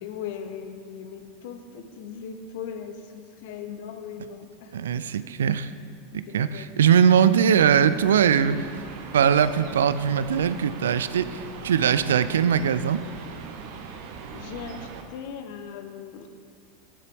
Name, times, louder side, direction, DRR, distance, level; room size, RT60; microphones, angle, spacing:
voice 1, 0.0-4.7 6.1-7.3 13.7-13.9 14.3-16.3, left 7 dB, 60° left, 7 dB, 0.8 m, -39 dB
voice 2, 4.7-5.7 6.1-8.6 9.1-13.0, right 8 dB, 75° right, 14 dB, 0.3 m, -21 dB
sound 1, 7.8-15.0, right 5 dB, 55° right, 0.9 m, -40 dB
14.5 x 6.6 x 3.5 m, 2.5 s
figure-of-eight pair, 85°, 0 cm